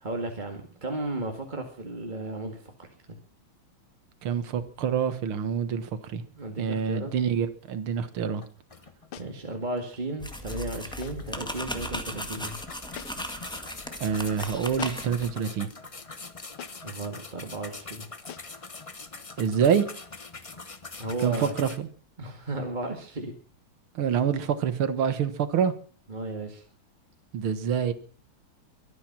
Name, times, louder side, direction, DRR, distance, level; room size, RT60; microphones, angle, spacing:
voice 1, 0.0-2.9 6.3-7.2 9.2-12.6 16.8-18.6 21.0-21.5 22.2-23.3 26.1-26.6, right 2 dB, 20° right, 2.1 m, -35 dB
voice 2, 4.2-6.2 6.6-8.4 14.0-15.7 19.4-19.9 21.2-21.9 24.0-25.7 27.3-27.9, right 7 dB, 85° right, 2.2 m, -26 dB
sound 1, 8.0-8.1 8.4-9.3 9.8-9.9 10.3-21.8, left 3 dB, 30° left, 0.7 m, -43 dB
sound 2, 9.1-9.4 11.0-11.3 12.9-13.4 14.8-15.2 16.6-16.9 18.3-18.6, left 9 dB, 80° left, 1.8 m, -43 dB
sound 3, 10.2-15.3, left 1 dB, ahead, 1.6 m, -37 dB
23.5 x 9.6 x 6.0 m
omnidirectional pair, 2.3 m